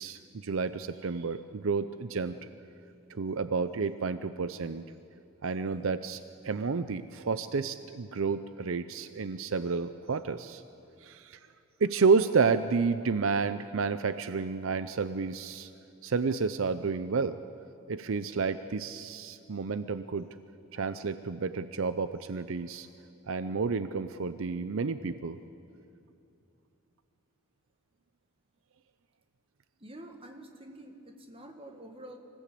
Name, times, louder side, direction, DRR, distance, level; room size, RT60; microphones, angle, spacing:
voice 1, 0.0-2.3 3.1-4.8 5.4-10.6 11.0-11.4 11.8-15.7 16.0-17.4 17.9-20.3 20.7-22.9 23.3-25.4, right 5 dB, 70° right, 12 dB, 0.5 m, -30 dB
voice 2, 29.8-32.2, right 1 dB, 25° right, 4 dB, 1.7 m, -47 dB
25.0 x 15.5 x 8.4 m, 2.6 s
head